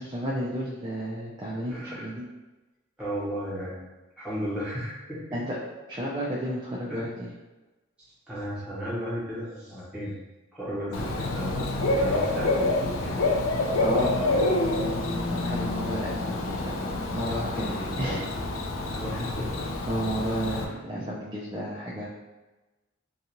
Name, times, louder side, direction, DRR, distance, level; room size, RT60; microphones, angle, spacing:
voice 1, 0.0-2.3 5.3-5.6 5.9-7.3 13.8-14.2 15.3-16.8 17.1-18.2 19.1-19.2 19.8-22.1, equal, 20° right, -6 dB, 0.3 m, -32 dB
voice 2, 1.7-2.0 3.0-3.9 4.2-5.2 6.9-7.0 8.3-10.1 10.5-13.5 14.1-14.7 17.8-18.2 18.9-19.7, equal, 5° right, -10 dB, 1.1 m, -34 dB
Bird / Cricket, 10.9-20.6, left 2 dB, 80° left, 0.4 m, -27 dB
2.5 x 2.3 x 2.9 m, 1.1 s
head